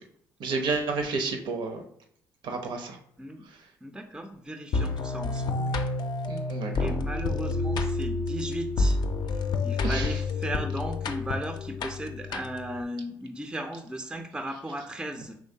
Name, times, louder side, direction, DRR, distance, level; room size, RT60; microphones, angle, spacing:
voice 1, 0.4-1.8 2.4-3.0 6.3-6.9 9.8-10.1, right 3 dB, 65° right, 5 dB, 0.7 m, -30 dB
voice 2, 3.8-5.8 6.8-9.0 9.6-15.4, right 1 dB, 10° right, 5 dB, 0.4 m, -36 dB
sound 1, 4.7-12.8, left 3 dB, 55° left, 0.4 m, -29 dB
3.7 x 3.0 x 2.7 m, 0.68 s
supercardioid pair, 60°, 9 cm